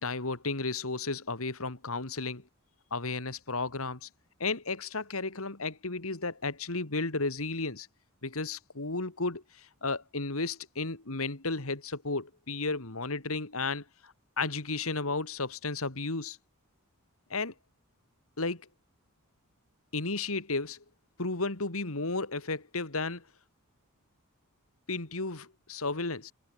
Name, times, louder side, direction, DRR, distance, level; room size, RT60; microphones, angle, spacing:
voice 1, 0.0-2.4 2.9-4.1 4.4-7.9 8.2-16.4 17.3-17.5 18.4-18.6 19.9-20.8 21.2-23.2 24.9-26.3, left 3 dB, 70° left, 2.5 m, -33 dB
head